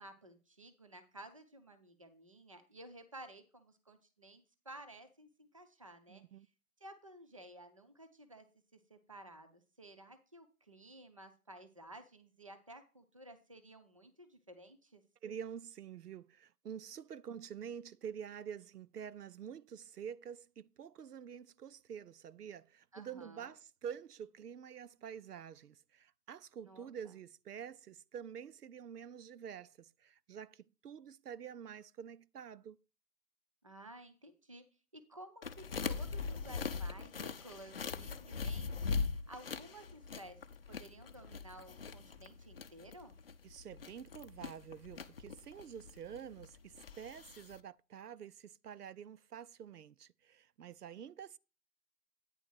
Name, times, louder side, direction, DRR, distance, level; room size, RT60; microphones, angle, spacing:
voice 1, 0.0-6.5 6.8-8.5 8.7-15.0 22.9-23.5 26.6-27.1 33.6-34.7 34.9-40.4 40.7-43.2, right 1 dB, 25° right, 0.5 m, -54 dB
voice 2, 6.1-6.5 15.2-32.8 43.4-51.4, right 8 dB, 85° right, 0.6 m, -48 dB
sound 1, 35.4-47.6, left 5 dB, 40° left, 0.6 m, -41 dB
9.2 x 3.7 x 6.2 m
hypercardioid pair, 155°, 45 cm